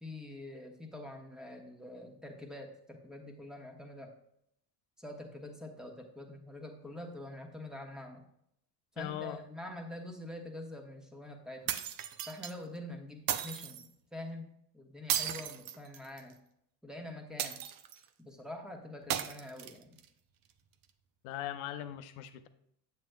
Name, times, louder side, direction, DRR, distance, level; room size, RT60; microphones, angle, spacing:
voice 1, 0.0-4.1 5.0-8.2 8.9-11.8 12.3-14.5 14.7-16.4 16.8-17.6 18.2-20.0, left 1 dB, ahead, 2 dB, 1.3 m, -45 dB
voice 2, 9.0-9.4 21.2-22.5, left 12 dB, 70° left, 10 dB, 0.8 m, -40 dB
sound 1, 11.7-12.5 13.3-13.9 15.1-16.3 17.4-18.0 19.1-20.0, right 10 dB, 45° right, 0.7 m, -35 dB
7.9 x 7.4 x 2.3 m, 0.74 s
supercardioid pair, 90°, 49 cm